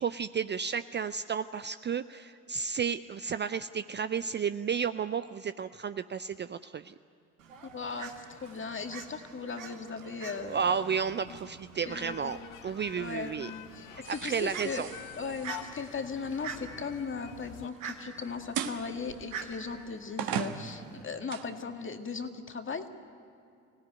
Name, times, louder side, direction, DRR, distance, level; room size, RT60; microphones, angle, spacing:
voice 1, 0.0-6.9 10.4-13.5 13.9-14.9, right 7 dB, 30° right, 13 dB, 0.5 m, -32 dB
Fowl, 7.4-21.0, right 6 dB, 85° right, 1.7 m, -47 dB
voice 2, 7.6-10.9 11.2-11.4 11.9-12.4 13.0-14.8 15.2-22.9, left 5 dB, 30° left, 6 dB, 2.0 m, -38 dB
sound 1, 11.9-17.7, left 12 dB, 55° left, 0.8 m, -48 dB
sound 2, 14.0-17.1 18.5-18.9 19.6-19.7 20.2-21.5, right 8 dB, 60° right, 1.5 m, -38 dB
24.5 x 17.0 x 9.4 m, 2.5 s
hypercardioid pair, 55°, 39 cm